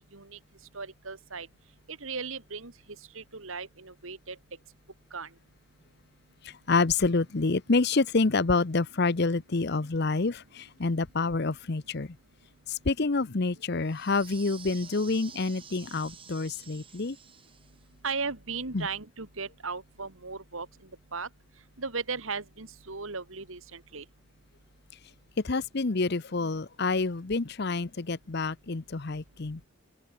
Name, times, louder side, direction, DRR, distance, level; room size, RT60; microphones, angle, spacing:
voice 1, 0.7-1.5 1.9-2.7 3.1-4.4 5.1-5.3 18.0-20.7 21.1-21.3 21.8-24.1, right 4 dB, 70° right, 2.4 m, -36 dB
voice 2, 6.4-12.2 12.7-17.2 18.7-18.9 25.4-29.7, left 3 dB, 50° left, 0.8 m, -28 dB
sound 1, 13.8-17.9, right 7 dB, 25° right, 5.7 m, -49 dB
open air
head